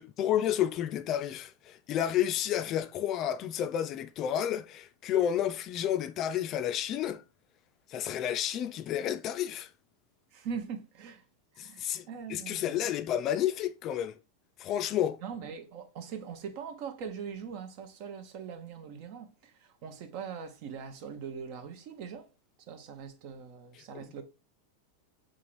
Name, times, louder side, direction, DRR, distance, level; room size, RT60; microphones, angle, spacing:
voice 1, 0.0-7.2 7.9-9.7 11.6-14.2 14.6-15.2 23.9-24.0, left 10 dB, 40° left, 0.3 m, -31 dB
voice 2, 10.3-11.2 11.5-12.9 15.2-22.3 22.7-24.2, right 6 dB, 55° right, 0.7 m, -41 dB
3.7 x 2.5 x 3.0 m
hypercardioid pair, 95°, 0 cm